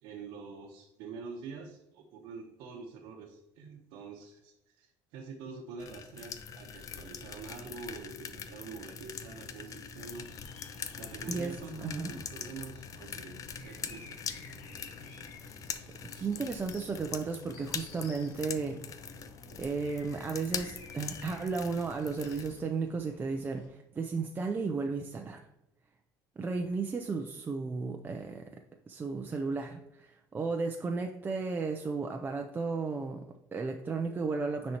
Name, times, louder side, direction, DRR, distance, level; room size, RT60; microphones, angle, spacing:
voice 1, 0.0-10.3 11.0-14.2 19.5-19.6, right 4 dB, 85° right, 0 dB, 1.0 m, -46 dB
sound 1, 5.8-22.6, left 7 dB, 45° left, 0.6 m, -43 dB
sound 2, 10.1-23.7, left 3 dB, 85° left, 1.6 m, -52 dB
voice 2, 11.3-12.2 15.9-18.8 19.6-25.5 26.4-28.5 28.9-34.8, right 4 dB, 25° right, 3 dB, 0.5 m, -34 dB
9.6 x 4.3 x 2.9 m, 0.89 s
cardioid pair, 120°, 8 cm